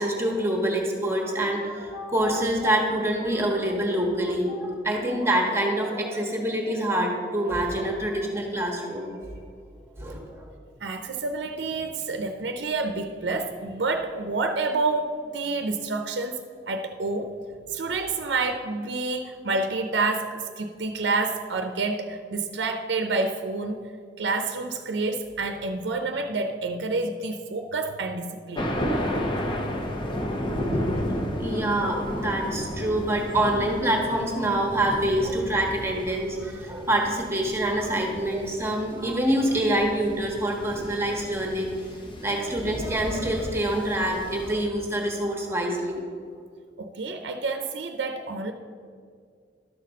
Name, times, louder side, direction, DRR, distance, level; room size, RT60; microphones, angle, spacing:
voice 1, 0.0-9.1 10.0-10.2 30.7-31.1 31.4-41.7 42.2-46.0, right 1 dB, 15° right, 0 dB, 1.2 m, -26 dB
voice 2, 10.8-17.3 17.7-23.9 24.2-28.7 46.8-48.5, right 3 dB, 90° right, 6 dB, 0.6 m, -28 dB
Thunder, 28.6-44.7, equal, 30° left, 0.9 m, -33 dB
12.0 x 4.2 x 6.3 m, 2.2 s
head